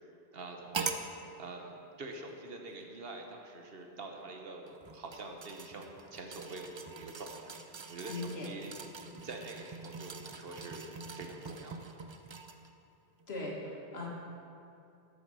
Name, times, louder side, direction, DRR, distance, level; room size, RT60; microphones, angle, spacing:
voice 1, 0.3-1.0 1.4-8.7 9.1-11.9, right 2 dB, 65° right, 2 dB, 1.2 m, -46 dB
sound 1, 0.7-1.1 2.1-2.2 4.6-12.7 13.2-13.3, right 4 dB, 40° right, 0.4 m, -43 dB
voice 2, 8.1-8.5 13.3-14.1, left 2 dB, 80° left, -2 dB, 2.0 m, -39 dB
12.5 x 5.9 x 5.5 m, 2.7 s
omnidirectional pair, 1.1 m